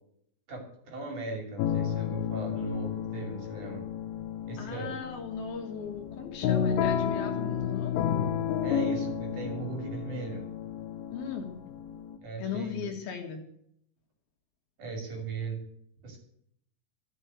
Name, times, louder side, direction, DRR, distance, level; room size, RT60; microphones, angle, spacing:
voice 1, 0.5-3.8 4.5-5.0 8.6-10.5 12.2-12.9 14.8-15.6 16.0-16.2, right 3 dB, 50° right, 3 dB, 4.0 m, -38 dB
sound 1, 1.6-12.2, left 8 dB, 85° left, 3.4 m, -31 dB
voice 2, 4.6-8.3 11.1-11.6 12.4-13.4, left 6 dB, 65° left, 3 dB, 3.4 m, -37 dB
13.5 x 7.4 x 8.6 m, 0.70 s
omnidirectional pair, 4.8 m